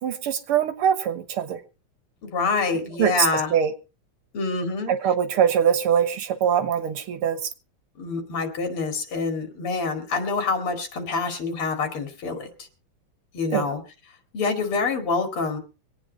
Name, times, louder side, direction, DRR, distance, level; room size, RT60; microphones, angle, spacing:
voice 1, 0.0-1.6 3.0-3.1 3.5-3.7 4.9-7.5 13.5-13.7, right 8 dB, 90° right, 11 dB, 2.2 m, -23 dB
voice 2, 2.2-3.5 4.3-5.0 8.0-12.5 13.3-13.8 14.3-15.6, left 4 dB, 80° left, 5 dB, 3.1 m, -26 dB
24.0 x 9.0 x 4.0 m, 0.32 s
omnidirectional pair, 2.4 m